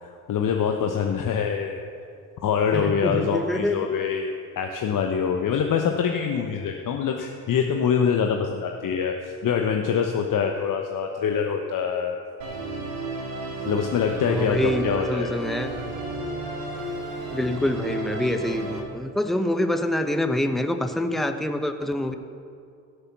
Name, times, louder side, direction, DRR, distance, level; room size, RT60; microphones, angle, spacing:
voice 1, 0.3-1.8 2.4-4.3 4.6-12.1 13.6-15.4, left 7 dB, 50° left, 3 dB, 1.1 m, -24 dB
voice 2, 2.7-3.8 14.3-15.7 17.3-22.1, left 1 dB, ahead, 7 dB, 1.0 m, -26 dB
Musical instrument, 12.4-18.8, right 2 dB, 60° right, 2.9 m, -32 dB
16.5 x 6.9 x 7.0 m, 2.4 s
hypercardioid pair, 50°, 40 cm